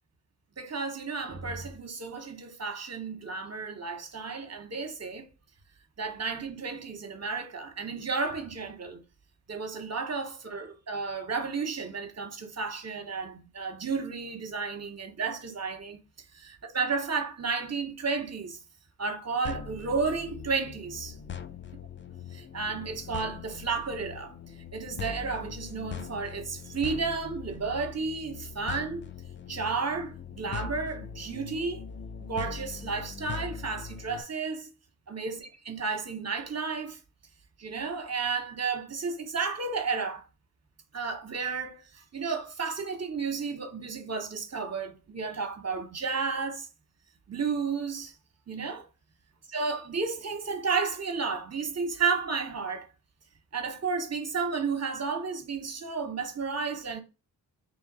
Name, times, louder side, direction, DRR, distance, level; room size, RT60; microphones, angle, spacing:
voice 1, 0.6-5.3 6.0-9.0 9.5-16.0 16.3-18.6 19.0-21.1 22.5-24.3 24.7-29.0 29.5-31.8 32.3-34.7 35.1-37.0 37.6-40.2 40.9-46.7 47.3-48.1 48.5-48.9 49.5-52.9 53.5-57.0, right 4 dB, 40° right, 0.9 m, -32 dB
sound 1, 19.4-34.2, left 6 dB, 30° left, 0.4 m, -41 dB
3.0 x 2.5 x 3.8 m
cardioid pair, 45°, 39 cm